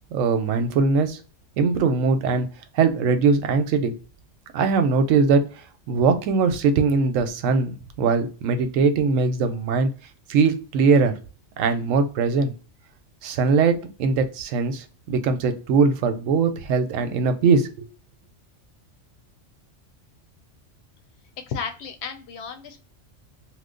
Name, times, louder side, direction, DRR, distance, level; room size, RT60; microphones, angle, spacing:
voice 1, 0.1-1.2 1.6-2.5 2.7-3.9 4.5-5.5 5.9-9.9 10.3-11.1 11.6-12.5 13.2-17.9, right 4 dB, 90° right, 8 dB, 1.0 m, -21 dB
voice 2, 21.4-22.8, left 6 dB, 65° left, 6 dB, 0.8 m, -33 dB
3.0 x 2.0 x 3.7 m, 0.36 s
omnidirectional pair, 1.3 m